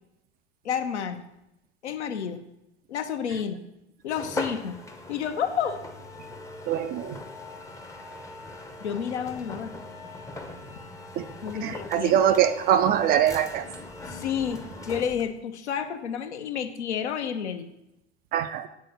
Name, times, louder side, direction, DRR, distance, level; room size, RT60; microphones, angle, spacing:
voice 1, 0.6-1.2 1.8-2.4 2.9-3.6 4.0-4.8 5.1-5.8 8.8-9.7 10.7-10.8 11.4-12.1 14.1-14.6 14.9-17.7, left 8 dB, 70° left, 7 dB, 0.8 m, -30 dB
sound 1, 4.1-15.4, left 2 dB, 10° left, 0.6 m, -40 dB
voice 2, 6.7-7.2 11.2-11.3 11.6-13.7 18.3-18.7, right 10 dB, 25° right, 10 dB, 0.4 m, -23 dB
8.3 x 3.8 x 6.3 m, 0.88 s
figure-of-eight pair, 80°, 35 cm